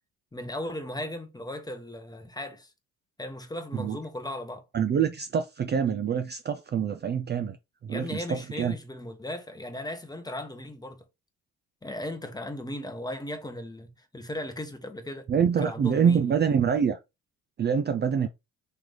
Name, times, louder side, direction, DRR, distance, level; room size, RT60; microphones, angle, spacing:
voice 1, 0.3-2.7 3.2-4.6 7.9-11.0 11.8-15.3 15.6-16.3, left 1 dB, 10° left, 1.0 m, -37 dB
voice 2, 4.7-7.6 7.8-8.7 15.3-17.0 17.6-18.3, right 7 dB, 30° right, 0.4 m, -25 dB
3.4 x 3.0 x 3.7 m
supercardioid pair, 70°, 32 cm